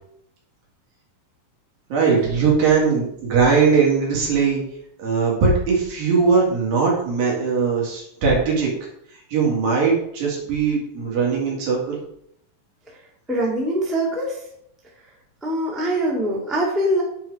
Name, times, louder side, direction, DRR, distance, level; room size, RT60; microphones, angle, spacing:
voice 1, 1.9-4.6 5.0-8.7 9.3-12.0, right 5 dB, 70° right, -3 dB, 3.9 m, -20 dB
voice 2, 13.3-14.4 15.4-17.0, right 1 dB, ahead, -4 dB, 0.7 m, -23 dB
9.3 x 4.7 x 4.8 m, 0.73 s
omnidirectional pair, 4.3 m